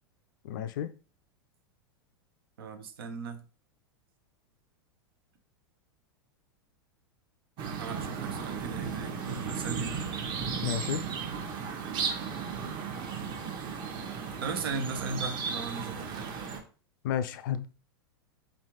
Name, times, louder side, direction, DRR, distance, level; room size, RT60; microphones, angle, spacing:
voice 1, 0.4-0.9 10.6-11.1 17.0-17.7, left 10 dB, 55° left, 0.4 m, -32 dB
voice 2, 2.6-3.4 7.7-9.9 14.4-16.3, right 4 dB, 65° right, 0.8 m, -37 dB
sound 1, 7.6-16.6, right 6 dB, 35° right, 1.0 m, -35 dB
3.7 x 3.2 x 2.9 m
figure-of-eight pair, 90°, 13 cm